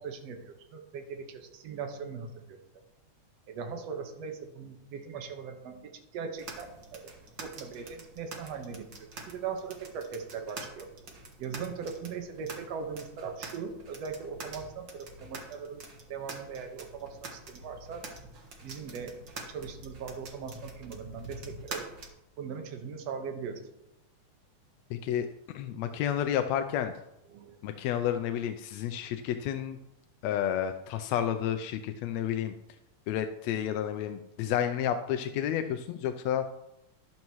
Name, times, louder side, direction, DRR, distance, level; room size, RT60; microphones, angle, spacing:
voice 1, 0.0-2.6 3.5-7.1 7.4-8.9 9.3-10.9 11.4-15.8 16.1-18.1 18.6-19.1 19.5-21.9 22.4-23.6 27.3-27.6, right 6 dB, 60° right, 4 dB, 2.3 m, -39 dB
sound 1, 6.4-22.1, right 3 dB, 45° right, 1.9 m, -46 dB
voice 2, 24.9-25.3 25.5-26.9 27.6-29.8 30.2-32.5 33.1-36.5, left 10 dB, 80° left, 7 dB, 1.6 m, -30 dB
13.0 x 12.0 x 3.1 m, 0.86 s
omnidirectional pair, 3.5 m